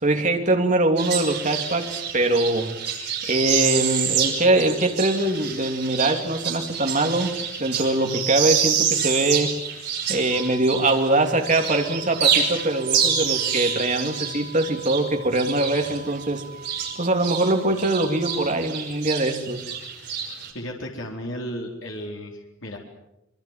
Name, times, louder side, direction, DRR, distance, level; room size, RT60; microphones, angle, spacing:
voice 1, 0.0-7.3 7.6-9.6 10.1-16.4 17.0-19.6, right 2 dB, 40° right, 3 dB, 3.0 m, -23 dB
sound 1, 1.0-11.1 11.4-17.5 17.8-20.5, right 8 dB, 55° right, 5.8 m, -27 dB
sound 2, 10.3-18.3, right 5 dB, 5° left, 5.5 m, -43 dB
voice 2, 20.5-22.8, equal, 65° left, 0 dB, 4.3 m, -34 dB
25.5 x 24.5 x 7.6 m, 0.86 s
head